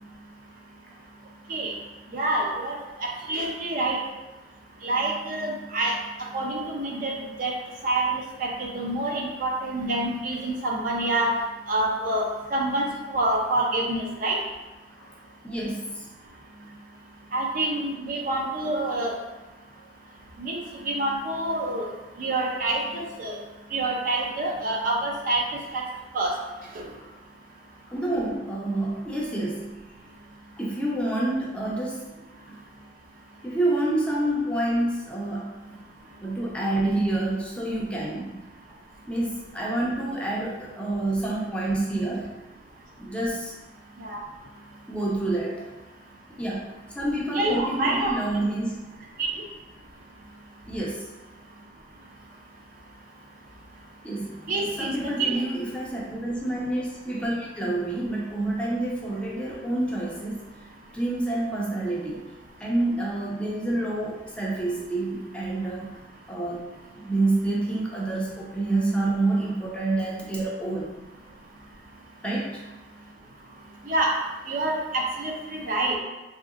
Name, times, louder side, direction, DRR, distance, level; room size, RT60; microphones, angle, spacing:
voice 1, 2.1-4.0 4.8-6.0 6.3-7.5 7.8-11.3 11.7-14.4 17.3-19.1 20.4-20.6 20.9-21.9 22.2-23.4 23.7-25.4 25.7-25.8 26.1-26.4 26.8-26.9 44.0-44.2 47.3-48.1 54.5-55.3 73.9-74.2 74.5-76.0, right 2 dB, 50° right, -1 dB, 0.5 m, -27 dB
voice 2, 15.4-16.0 26.9-27.1 27.9-29.8 30.6-32.0 32.5-32.6 33.4-35.6 36.2-38.4 39.1-42.3 43.0-43.5 44.9-45.7 46.4-48.8 50.7-51.0 54.0-60.4 60.9-62.2 62.6-65.9 66.3-66.7 66.9-70.9 72.2-72.6, right 2 dB, 5° left, -4 dB, 0.4 m, -28 dB
3.2 x 2.7 x 2.4 m, 1.1 s
head